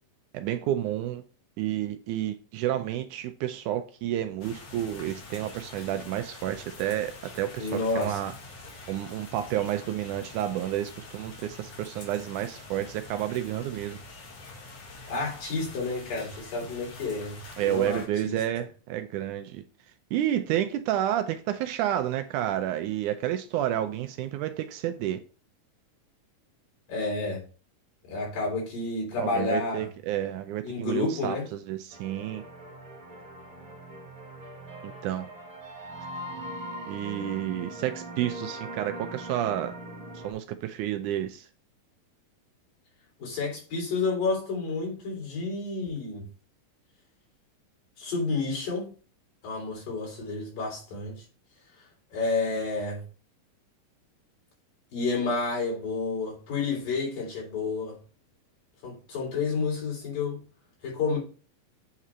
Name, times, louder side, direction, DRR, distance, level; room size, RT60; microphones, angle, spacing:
voice 1, 0.3-1.2 1.6-8.3 8.9-14.0 17.6-19.6 20.1-25.2 29.2-32.4 34.8-35.3 36.9-39.8 40.2-41.5, right 12 dB, 80° right, 1.9 m, -30 dB
sound 1, 4.4-18.1, left 3 dB, 55° left, 2.6 m, -45 dB
voice 2, 7.6-8.2 15.1-18.4 26.9-27.4 28.1-29.9 30.6-31.5 43.2-46.2 48.0-48.9 49.4-51.2 52.1-53.0 54.9-58.0 58.8-60.4 60.8-61.2, left 3 dB, 85° left, 5.1 m, -30 dB
sound 2, 31.9-40.3, right 1 dB, 40° right, 1.2 m, -41 dB
8.2 x 3.8 x 4.4 m
omnidirectional pair, 3.8 m